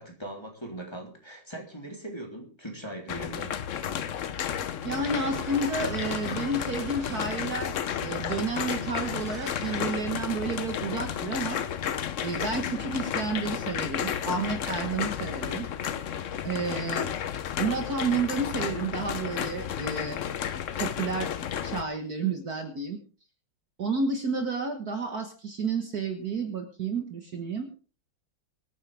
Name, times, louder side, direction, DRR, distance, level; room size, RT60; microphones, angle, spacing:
voice 1, 0.0-3.5, right 1 dB, 10° left, 0 dB, 3.3 m, -40 dB
sound 1, 3.1-21.8, left 9 dB, 65° left, 0.7 m, -32 dB
voice 2, 4.8-11.6 12.2-15.7 16.4-17.1 17.6-20.2 20.8-21.3 21.6-23.0 23.8-27.7, right 4 dB, 50° right, 4 dB, 1.9 m, -31 dB
sound 2, 5.0-7.7 8.5-10.0, right 1 dB, 35° right, 3.1 m, -45 dB
24.0 x 9.4 x 3.5 m, 0.37 s
omnidirectional pair, 2.2 m